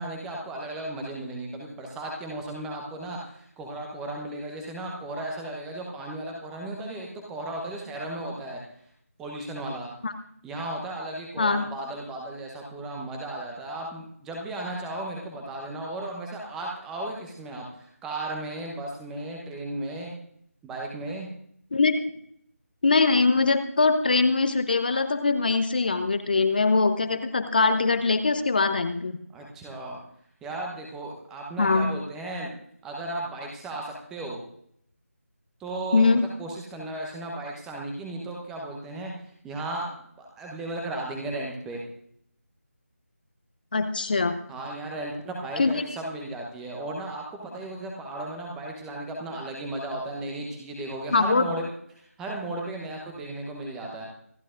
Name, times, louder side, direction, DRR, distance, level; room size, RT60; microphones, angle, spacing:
voice 1, 0.0-8.6 9.2-9.9 10.4-20.1 20.6-21.3 29.3-30.0 30.4-32.5 32.8-34.4 35.6-36.1 36.4-39.1 39.4-39.9 40.2-41.8 44.5-51.7 51.9-54.1, right 1 dB, 5° right, -1 dB, 0.9 m, -35 dB
voice 2, 11.4-11.7 21.7-22.1 22.8-29.1 31.6-31.9 35.9-36.2 43.7-44.3 45.6-45.8 51.1-51.4, left 3 dB, 35° left, 9 dB, 0.8 m, -22 dB
26.5 x 10.5 x 2.5 m, 0.67 s
figure-of-eight pair, 160°, 8 cm